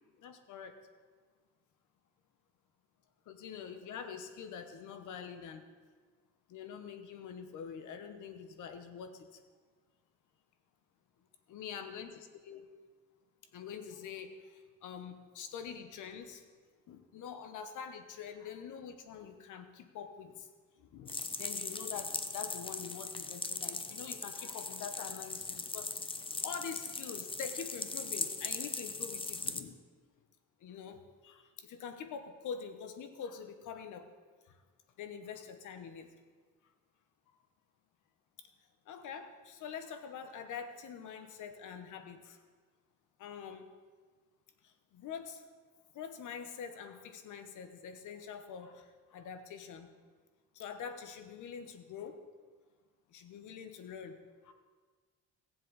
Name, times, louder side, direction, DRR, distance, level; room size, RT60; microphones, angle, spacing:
voice 1, 0.2-0.8 3.3-5.6 6.5-9.4 11.5-12.1 12.4-12.7 13.5-16.4 16.9-20.5 20.8-29.8 30.6-34.1 34.4-34.6 35.0-36.1 38.4-38.5 38.8-42.4 43.2-43.7 44.6-45.4 45.9-49.9 50.5-52.2 53.1-54.2 54.4-54.5, left 7 dB, 80° left, 8 dB, 1.1 m, -45 dB
sound 1, 21.1-29.6, left 3 dB, 15° left, 0.7 m, -39 dB
17.5 x 7.5 x 4.0 m, 1.5 s
cardioid pair, 90°, 30 cm